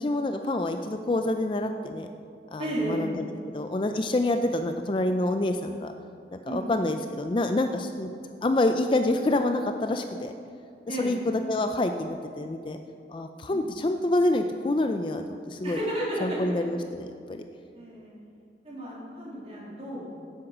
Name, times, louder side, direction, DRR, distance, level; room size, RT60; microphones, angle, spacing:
voice 1, 0.0-2.1 2.5-3.2 3.5-5.9 6.3-8.1 8.4-10.3 10.9-12.8 13.1-15.8 16.2-17.4, left 2 dB, 30° left, 6 dB, 0.4 m, -27 dB
voice 2, 2.6-3.1 6.4-6.6 10.9-11.2 13.5-13.6 15.6-16.4 17.7-18.1 18.6-20.1, right 1 dB, 35° right, -6 dB, 3.1 m, -32 dB
9.9 x 7.9 x 6.0 m, 2.4 s
head